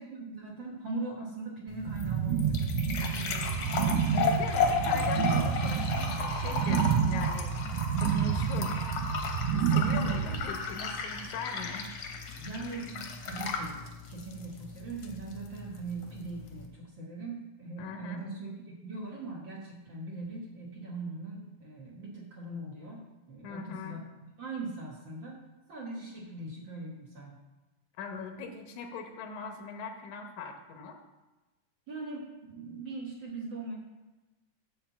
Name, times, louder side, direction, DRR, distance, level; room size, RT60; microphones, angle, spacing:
voice 1, 0.0-3.7 5.3-5.4 9.9-10.2 12.4-24.0 24.4-25.4 25.7-27.4 31.9-33.7, right 3 dB, 50° right, -3 dB, 1.6 m, -40 dB
sound 1, 1.7-16.7, left 4 dB, 60° left, 1.6 m, -35 dB
sound 2, 1.9-10.4, right 7 dB, 80° right, 1.9 m, -29 dB
voice 2, 4.1-7.6 8.0-8.9 9.5-11.9 17.8-18.2 23.4-24.0 28.0-31.0, left 4 dB, 85° left, 4 dB, 2.4 m, -41 dB
10.0 x 3.7 x 7.0 m, 1.1 s
omnidirectional pair, 3.3 m